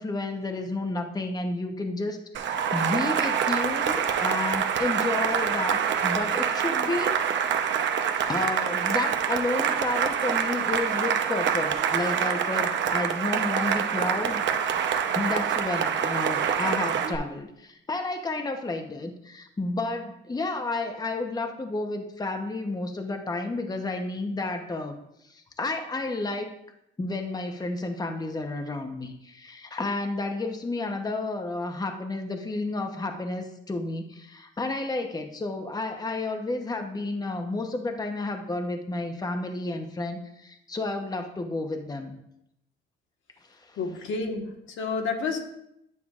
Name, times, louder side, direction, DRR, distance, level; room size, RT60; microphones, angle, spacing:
voice 1, 0.0-7.6 8.3-14.4 15.1-25.0 25.2-26.5 27.0-42.1 43.5-43.8, left 2 dB, 20° left, 5 dB, 0.9 m, -31 dB
Cheering / Applause, 2.3-17.2, right 8 dB, 65° right, 0.8 m, -26 dB
voice 2, 43.8-45.4, left 4 dB, 75° left, 2 dB, 1.4 m, -30 dB
9.5 x 6.5 x 2.4 m, 0.79 s
cardioid pair, 90°, 20 cm